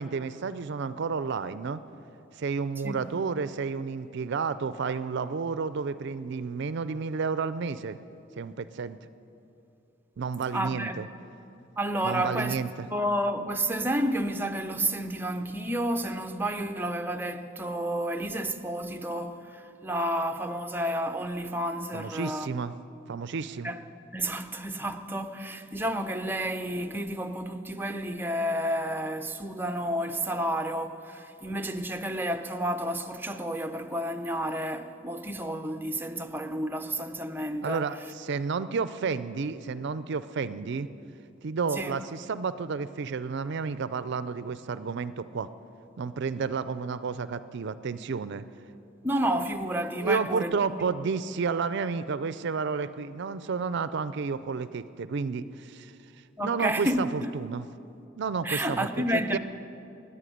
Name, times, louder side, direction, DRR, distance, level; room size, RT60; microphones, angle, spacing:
voice 1, 0.0-1.8 2.3-8.0 8.4-9.0 10.2-11.1 12.0-12.9 21.9-22.7 23.1-23.7 37.6-40.9 41.4-45.5 46.0-48.5 50.0-55.9 56.4-57.7 58.2-59.4, right 5 dB, 60° right, 0.4 m, -31 dB
voice 2, 10.5-11.0 11.8-12.6 12.9-22.5 23.6-23.8 24.1-37.8 41.8-42.0 49.0-50.9 56.4-57.3 58.4-59.4, right 1 dB, 10° right, 0.7 m, -30 dB
14.5 x 9.8 x 10.0 m
head